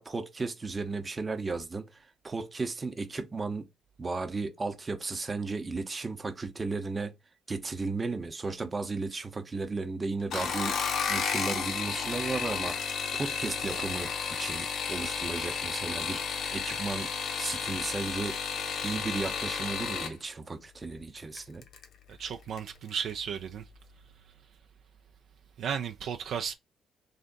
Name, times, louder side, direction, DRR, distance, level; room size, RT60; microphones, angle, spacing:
voice 1, 0.0-3.7 4.0-7.1 7.5-10.8 11.1-17.1 17.4-18.4 18.8-21.6, right 3 dB, 30° right, 0.7 m, -35 dB
sound 1, 10.2-20.1 21.3-21.8 22.3-22.7 23.0-23.1, left 6 dB, 70° left, 0.7 m, -32 dB
voice 2, 22.1-23.6 25.6-26.5, right 7 dB, 70° right, 0.4 m, -34 dB
3.3 x 2.5 x 3.8 m
cardioid pair, 90°, 0 cm